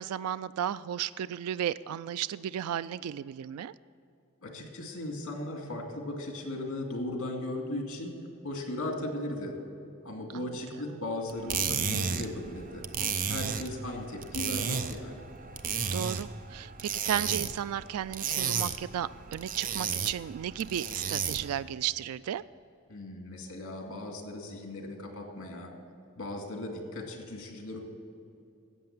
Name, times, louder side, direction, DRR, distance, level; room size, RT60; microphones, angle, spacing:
voice 1, 0.0-3.7 10.3-10.5 15.9-22.4, right 10 dB, 85° right, 16 dB, 0.3 m, -34 dB
voice 2, 4.4-8.1 8.4-9.5 10.0-12.8 13.3-15.2 22.9-25.7 26.2-27.8, left 1 dB, 65° left, 2 dB, 2.3 m, -37 dB
sound 1, 11.3-21.6, right 6 dB, 40° right, 0.6 m, -33 dB
13.5 x 8.6 x 7.3 m, 2.6 s
head